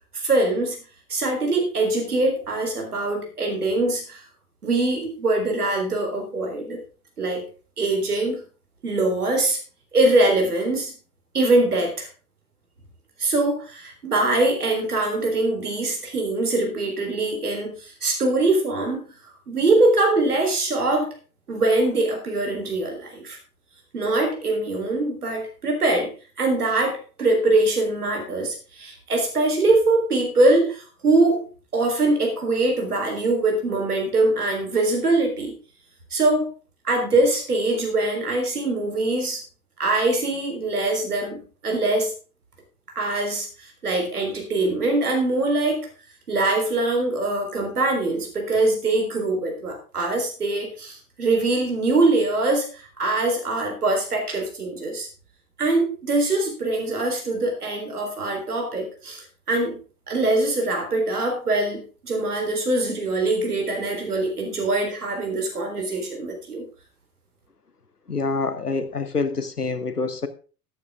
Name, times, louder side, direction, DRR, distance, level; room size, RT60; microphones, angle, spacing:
voice 1, 0.1-0.8 1.1-4.2 4.6-6.8 7.2-7.5 7.8-8.4 8.8-9.6 9.9-10.9 11.3-12.1 13.2-19.0 19.5-21.1 21.5-23.4 23.9-26.1 26.4-31.4 31.7-35.5 36.1-36.5 36.8-39.4 39.8-41.4 41.6-42.1 43.0-45.8 46.3-55.1 55.6-59.8 60.1-66.6, right 2 dB, 80° right, 3.9 m, -23 dB
voice 2, 68.1-70.3, left 4 dB, 90° left, 1.2 m, -26 dB
13.0 x 9.2 x 3.6 m
figure-of-eight pair, 85°, 45 cm